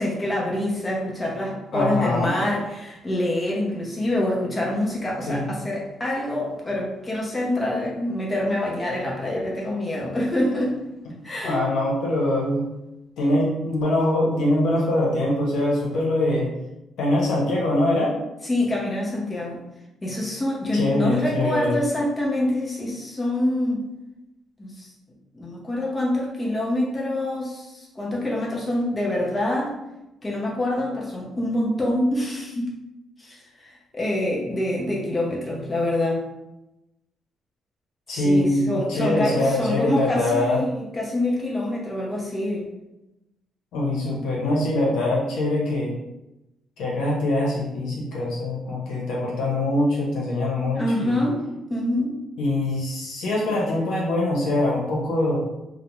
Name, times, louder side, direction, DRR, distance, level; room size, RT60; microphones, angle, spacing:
voice 1, 0.0-10.8 11.2-11.6 18.4-19.6 20.0-23.9 24.6-24.9 25.3-29.8 30.2-32.7 33.2-36.2 38.1-42.7 50.7-51.4 51.7-52.2, left 1 dB, 20° left, -4 dB, 0.7 m, -26 dB
voice 2, 1.7-2.4 5.3-5.5 11.4-12.6 13.2-16.5 17.0-18.2 20.7-21.8 38.1-40.6 43.7-46.0 46.8-51.3 52.4-55.4, left 1 dB, 85° left, -4 dB, 0.8 m, -23 dB
2.5 x 2.1 x 2.9 m, 0.94 s
cardioid pair, 90°, 0 cm